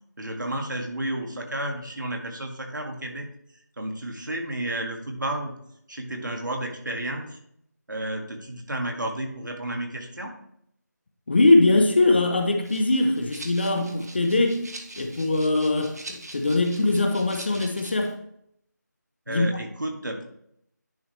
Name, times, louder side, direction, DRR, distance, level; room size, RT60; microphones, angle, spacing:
voice 1, 0.2-3.3 3.8-5.5 5.9-7.4 7.9-10.3 19.3-20.2, right 1 dB, 85° right, 1.8 m, -32 dB
voice 2, 11.3-14.6 15.0-18.1 19.3-19.5, left 2 dB, 35° left, 0.8 m, -21 dB
Rattle (instrument), 12.6-18.1, right 2 dB, 60° right, 1.2 m, -43 dB
10.5 x 4.8 x 3.3 m
figure-of-eight pair, 170°, 10 cm